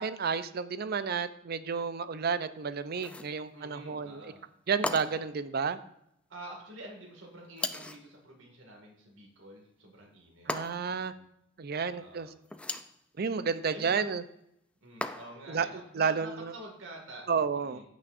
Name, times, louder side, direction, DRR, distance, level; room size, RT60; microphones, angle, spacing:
voice 1, 0.0-4.3 4.7-5.8 10.5-11.1 11.6-12.3 13.2-14.2 15.5-15.7 15.9-16.5 17.3-17.8, right 5 dB, 50° right, 13 dB, 0.5 m, -31 dB
sound 1, 2.9-3.4 4.8-5.4 7.6-8.1 10.5-11.0 12.5-13.0 15.0-15.5, left 2 dB, 5° left, 0.4 m, -37 dB
voice 2, 3.5-4.4 5.0-5.2 6.3-11.2 11.9-12.3 13.7-14.0 14.8-17.3 17.5-17.8, right 1 dB, 80° right, 0 dB, 2.0 m, -48 dB
15.0 x 6.3 x 2.6 m, 0.76 s
head